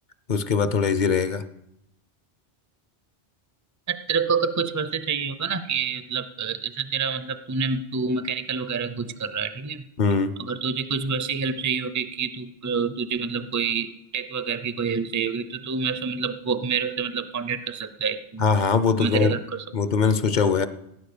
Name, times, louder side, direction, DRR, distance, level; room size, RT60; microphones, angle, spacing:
voice 1, 0.3-1.4 10.0-10.4 18.4-19.3 19.7-20.7, left 5 dB, 50° left, 13 dB, 0.8 m, -21 dB
voice 2, 3.9-9.8 10.4-18.4 19.0-19.6, right 5 dB, 20° right, 12 dB, 0.5 m, -27 dB
17.0 x 9.5 x 6.7 m, 0.87 s
omnidirectional pair, 1.1 m